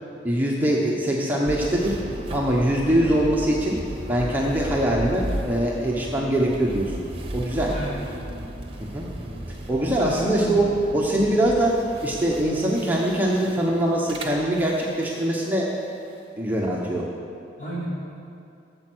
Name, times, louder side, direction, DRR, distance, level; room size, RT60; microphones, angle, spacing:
voice 1, 0.2-1.9 2.3-3.8 4.1-6.9 7.3-7.7 8.8-9.1 9.7-11.8 12.0-15.7 16.4-17.1, right 1 dB, 10° right, -3 dB, 0.9 m, -23 dB
sound 1, 1.5-15.4, right 1 dB, 30° right, 1.1 m, -35 dB
voice 2, 7.7-8.4 9.1-9.5 10.0-10.7 17.6-17.9, right 1 dB, 45° left, -7 dB, 3.5 m, -33 dB
13.0 x 7.8 x 6.1 m, 2.6 s
head